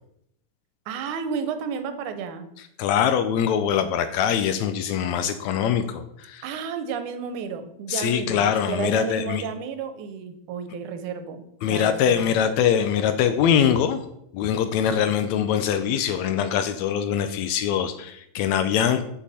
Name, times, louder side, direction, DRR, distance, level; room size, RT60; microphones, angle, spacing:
voice 1, 0.9-2.5 6.4-12.6, right 6 dB, 85° right, 9 dB, 2.2 m, -32 dB
voice 2, 2.8-6.5 7.9-9.4 11.6-14.0 14.3-19.0, left 8 dB, 80° left, 10 dB, 1.7 m, -23 dB
8.1 x 6.0 x 4.1 m, 0.76 s
omnidirectional pair, 3.5 m